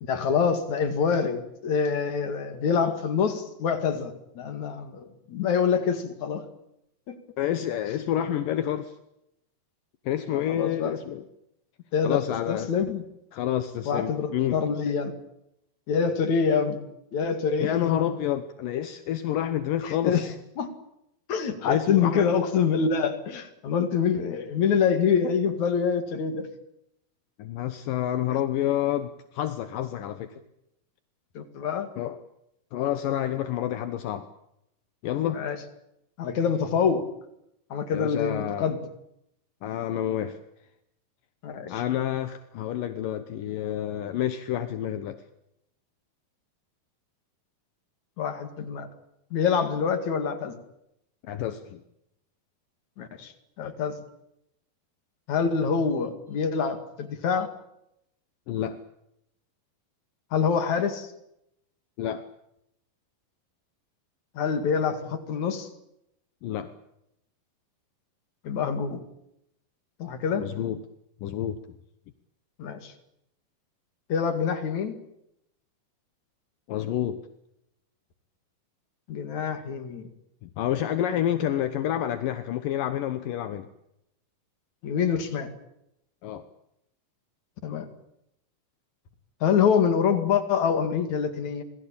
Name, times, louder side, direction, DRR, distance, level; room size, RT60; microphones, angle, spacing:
voice 1, 0.0-6.4 7.1-7.2 10.5-10.9 11.9-13.0 13.9-15.1 15.9-16.8 17.1-17.9 19.8-20.3 20.6-20.7 21.3-26.5 31.3-31.9 35.3-35.6 36.2-37.1 37.7-38.8 41.4-41.7 48.2-48.9 49.3-50.6 53.0-54.0 55.3-57.5 60.3-61.1 64.3-65.7 68.4-69.0 70.0-70.5 72.6-72.9 74.1-74.9 79.1-80.1 84.8-85.5 87.6-87.9 89.4-91.6, left 6 dB, 55° left, 9 dB, 3.3 m, -26 dB
voice 2, 7.4-9.0 10.1-11.3 12.0-12.7 13.3-14.6 17.6-20.3 21.7-22.3 27.4-30.4 32.0-32.2 32.7-34.3 35.0-35.4 37.9-38.7 39.6-40.4 41.7-45.2 51.2-51.8 58.5-58.8 62.0-62.3 66.4-66.7 70.4-70.8 71.2-71.6 76.7-77.2 80.4-83.7 86.2-86.4, left 11 dB, 75° left, 10 dB, 2.7 m, -28 dB
27.5 x 20.5 x 8.7 m, 0.82 s
omnidirectional pair, 4.1 m